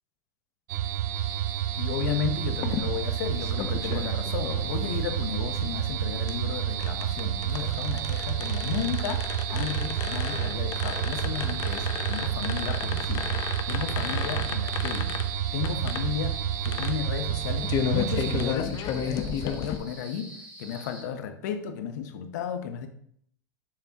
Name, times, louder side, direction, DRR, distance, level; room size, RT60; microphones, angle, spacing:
sound 1, 0.7-18.6, right 11 dB, 75° right, 0.4 m, -30 dB
sound 2, 1.1-21.0, equal, 10° right, 2.3 m, -46 dB
voice 1, 1.8-13.3 13.7-20.3 20.6-22.9, left 8 dB, 75° left, 8 dB, 0.8 m, -34 dB
sound 3, 2.5-19.8, left 8 dB, 40° left, 0.7 m, -34 dB
6.7 x 5.7 x 2.8 m, 0.67 s
supercardioid pair, 115°, 10 cm